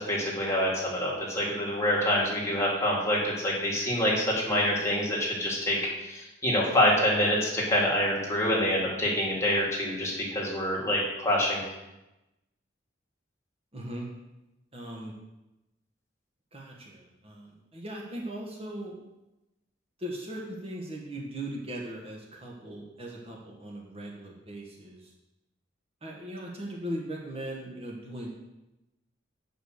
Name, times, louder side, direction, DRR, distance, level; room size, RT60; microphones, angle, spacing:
voice 1, 0.1-5.8 6.0-11.6, left 1 dB, 15° left, -5 dB, 2.5 m, -26 dB
voice 2, 13.7-14.1 14.7-15.1 16.5-19.0 20.0-25.1 26.0-28.3, right 1 dB, 30° right, -2 dB, 1.4 m, -39 dB
8.6 x 5.4 x 6.5 m, 0.98 s
head